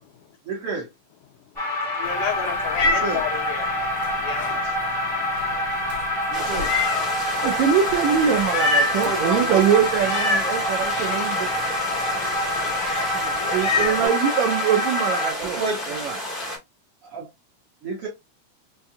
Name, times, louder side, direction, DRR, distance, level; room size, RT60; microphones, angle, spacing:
voice 1, 0.5-0.9 2.8-3.2 6.3-6.7 9.0-9.6 13.7-14.1 15.4-15.9 17.1-17.3 17.8-18.1, right 4 dB, 60° right, 1.5 m, -30 dB
sound 1, 1.6-15.3, left 1 dB, ahead, 0.6 m, -26 dB
voice 2, 1.9-3.7 4.1-4.8, left 9 dB, 75° left, 2.3 m, -31 dB
Meow, 2.0-14.1, left 3 dB, 60° left, 1.6 m, -29 dB
sound 2, 6.3-16.6, equal, 45° left, 0.6 m, -32 dB
voice 3, 7.4-11.5 13.2-15.6 15.9-16.2, right 8 dB, 80° right, 1.7 m, -23 dB
5.4 x 2.2 x 2.6 m
omnidirectional pair, 3.6 m